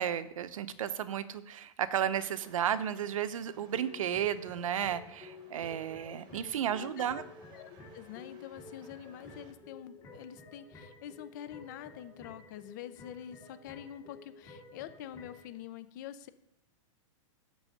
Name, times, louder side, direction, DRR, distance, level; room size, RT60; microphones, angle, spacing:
voice 1, 0.0-7.2, right 9 dB, 85° right, 14 dB, 0.7 m, -33 dB
sound 1, 2.3-9.5, right 5 dB, 25° right, 1.0 m, -60 dB
sound 2, 3.7-15.5, left 3 dB, 20° left, 2.0 m, -52 dB
voice 2, 6.7-7.1 7.5-16.3, left 11 dB, 35° left, 14 dB, 0.4 m, -46 dB
6.2 x 5.4 x 6.4 m, 0.85 s
supercardioid pair, 165°, 17 cm